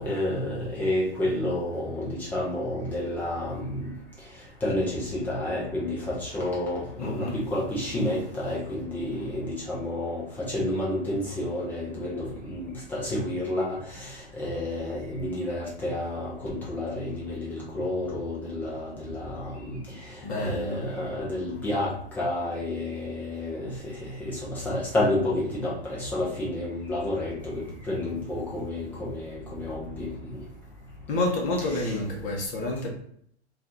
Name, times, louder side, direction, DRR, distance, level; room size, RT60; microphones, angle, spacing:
voice 1, 0.0-3.9 4.6-10.2 10.5-14.1 14.3-19.8 20.4-21.9 22.2-23.6 24.2-30.1 31.7-31.8, left 1 dB, 5° left, -5 dB, 0.3 m, -30 dB
voice 2, 7.0-7.4 20.2-20.8 31.1-32.9, left 2 dB, 25° left, -1 dB, 0.8 m, -29 dB
2.7 x 2.4 x 3.7 m, 0.65 s
hypercardioid pair, 135°, 34 cm